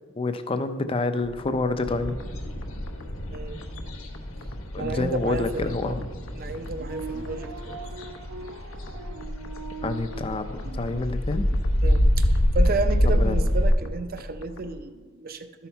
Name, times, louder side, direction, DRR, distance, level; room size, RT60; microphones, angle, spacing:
voice 1, 0.2-2.2 4.7-6.0 9.8-11.5 13.1-13.4, left 3 dB, 25° left, 9 dB, 0.5 m, -28 dB
sound 1, 1.2-14.8, left 2 dB, 70° left, 0.8 m, -44 dB
sound 2, 1.9-13.7, equal, 85° left, 1.2 m, -26 dB
voice 2, 4.8-6.0 6.3-7.8 11.8-15.7, right 3 dB, 45° right, 9 dB, 0.6 m, -32 dB
sound 3, 6.7-11.1, right 4 dB, 65° right, 1.0 m, -40 dB
12.5 x 5.7 x 4.6 m, 1.4 s
head